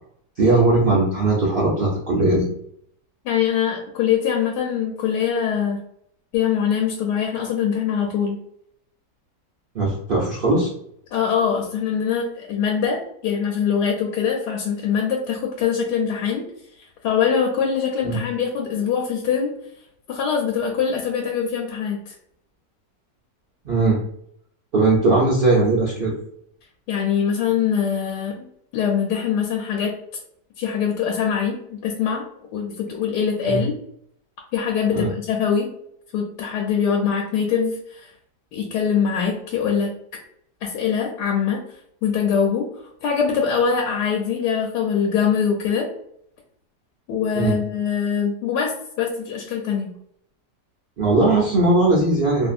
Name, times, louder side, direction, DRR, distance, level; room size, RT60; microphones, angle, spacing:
voice 1, 0.4-2.5 9.7-10.7 18.0-18.2 23.6-24.0 24.7-26.1 33.4-33.6 34.9-35.1 47.4-47.6 51.0-52.5, right 2 dB, 70° right, -6 dB, 0.5 m, -19 dB
voice 2, 3.2-5.8 6.3-8.4 11.1-16.4 16.8-19.5 20.1-22.1 26.9-28.5 28.7-29.9 30.6-32.3 32.5-33.7 34.5-35.7 36.1-38.1 38.5-39.9 40.6-41.6 42.0-42.7 43.0-45.9 47.1-49.9, left 7 dB, 80° left, -1 dB, 1.1 m, -23 dB
2.7 x 2.6 x 2.4 m, 0.69 s
omnidirectional pair, 1.8 m